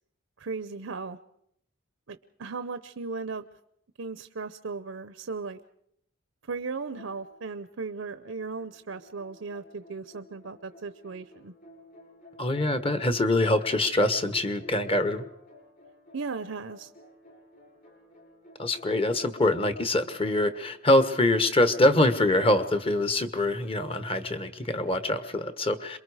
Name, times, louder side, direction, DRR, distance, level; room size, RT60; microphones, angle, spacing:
voice 1, 0.4-1.2 2.1-3.5 4.0-5.6 6.5-11.5 16.1-16.9, right 4 dB, 70° right, 11 dB, 0.7 m, -36 dB
sound 1, 7.0-7.8 8.2-20.4, left 2 dB, 45° left, 7.2 m, -53 dB
voice 2, 12.4-15.2 18.6-26.0, left 1 dB, 25° left, 10 dB, 1.2 m, -24 dB
27.0 x 22.5 x 4.9 m, 0.73 s
head